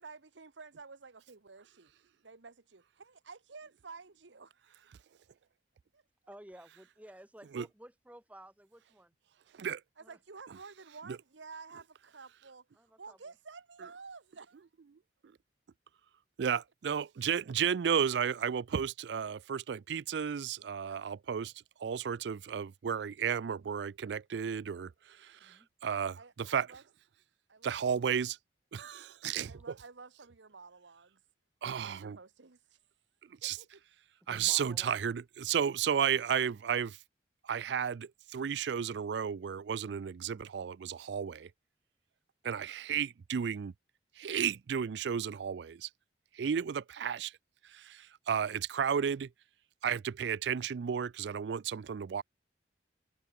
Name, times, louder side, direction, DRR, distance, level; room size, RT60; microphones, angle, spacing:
voice 1, 0.0-1.9 2.2-5.0 5.9-6.0 10.0-14.7 20.8-21.0 26.1-26.8 27.5-28.2 29.5-31.2 31.8-32.8 33.4-33.8 42.5-42.6, right 4 dB, 85° right, 1.2 m, -52 dB
voice 2, 6.3-9.1 10.0-10.2 12.8-13.2 25.4-25.7 29.3-29.6 34.2-35.1, right 1 dB, 10° right, 1.1 m, -54 dB
voice 3, 16.4-21.5 21.8-26.7 27.6-28.4 28.7-29.5 31.6-32.2 33.4-33.6 34.3-37.0 37.4-41.5 42.4-43.7 44.2-45.9 46.3-47.3 47.7-49.3 49.8-52.2, right 7 dB, 70° right, 0.4 m, -33 dB
head